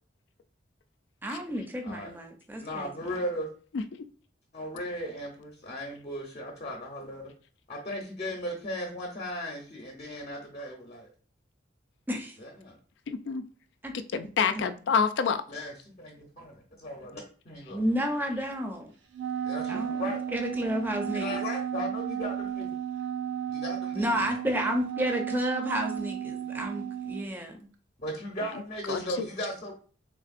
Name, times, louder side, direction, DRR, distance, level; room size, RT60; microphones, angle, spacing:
voice 1, 1.2-2.9 12.1-12.4 13.8-13.9 14.6-14.7 17.7-18.9 19.7-21.4 23.9-27.7, equal, 10° right, 0.5 m, -31 dB
voice 2, 2.6-3.5 4.5-7.3 7.7-11.1 12.4-12.8 15.5-17.2 17.5-17.8 19.4-20.2 21.1-22.7 23.5-24.4 28.0-29.7, equal, 35° left, 0.7 m, -37 dB
voice 3, 13.1-13.4 14.1-15.4 28.9-29.3, left 6 dB, 65° left, 0.3 m, -27 dB
Wind instrument woodwind instrument, 19.1-27.3, right 9 dB, 75° right, 0.5 m, -34 dB
3.6 x 3.3 x 2.4 m
head